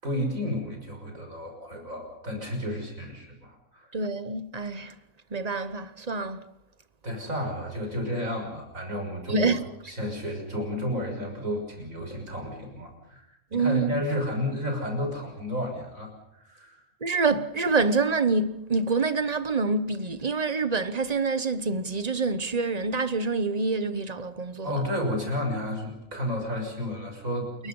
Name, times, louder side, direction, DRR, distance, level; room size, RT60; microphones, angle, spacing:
voice 1, 0.0-3.9 7.0-9.6 9.8-16.8 24.6-27.5, left 1 dB, 75° right, 6.7 m, -32 dB
voice 2, 3.9-4.9 5.3-6.4 9.3-9.6 13.5-14.0 17.0-24.7, right 4 dB, 30° right, 1.1 m, -26 dB
29.5 x 22.0 x 5.5 m
omnidirectional pair, 1.4 m